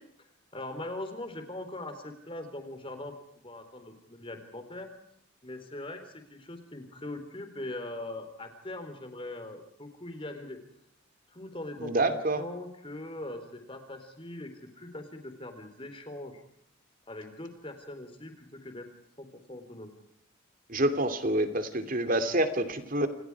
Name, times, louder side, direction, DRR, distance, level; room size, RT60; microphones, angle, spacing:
voice 1, 0.5-3.1 3.4-4.9 5.4-10.6 11.3-16.4 17.1-18.9 19.2-19.9, left 1 dB, 25° left, 7 dB, 3.8 m, -41 dB
voice 2, 11.8-12.4 20.7-23.1, right 1 dB, 45° right, 9 dB, 2.7 m, -27 dB
29.0 x 28.5 x 4.8 m, 0.71 s
head